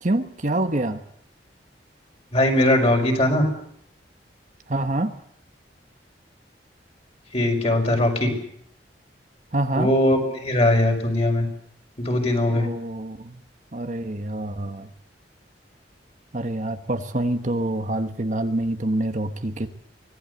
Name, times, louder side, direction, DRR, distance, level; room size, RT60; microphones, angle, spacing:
voice 1, 0.0-1.0 4.7-5.1 9.5-9.9 12.5-13.4 13.7-14.9 16.3-19.7, right 1 dB, 45° right, 7 dB, 1.3 m, -26 dB
voice 2, 2.3-3.5 7.3-8.3 9.8-11.5 12.0-12.7, left 1 dB, 35° left, 3 dB, 5.2 m, -20 dB
24.5 x 18.5 x 8.1 m, 0.69 s
head